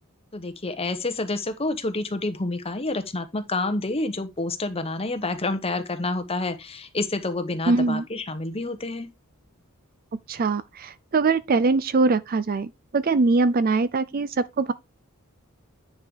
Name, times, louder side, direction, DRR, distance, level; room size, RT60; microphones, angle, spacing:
voice 1, 0.3-9.1, left 2 dB, 25° left, 1.0 m, -28 dB
voice 2, 7.7-8.0 10.3-14.7, right 3 dB, 40° right, 0.4 m, -22 dB
9.6 x 4.8 x 3.6 m
head